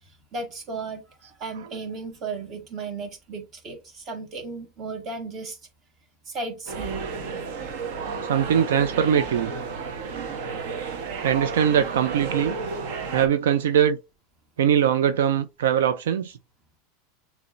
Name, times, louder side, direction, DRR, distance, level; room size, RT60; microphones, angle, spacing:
voice 1, 0.3-5.6 6.2-7.1, right 4 dB, 40° right, 1.6 m, -35 dB
sound 1, 6.7-13.3, right 5 dB, 70° right, 1.0 m, -32 dB
voice 2, 8.3-9.5 11.2-12.6 13.1-14.0 14.6-16.4, right 9 dB, 85° right, 0.4 m, -21 dB
6.7 x 3.1 x 2.6 m
supercardioid pair, 120°, 0 cm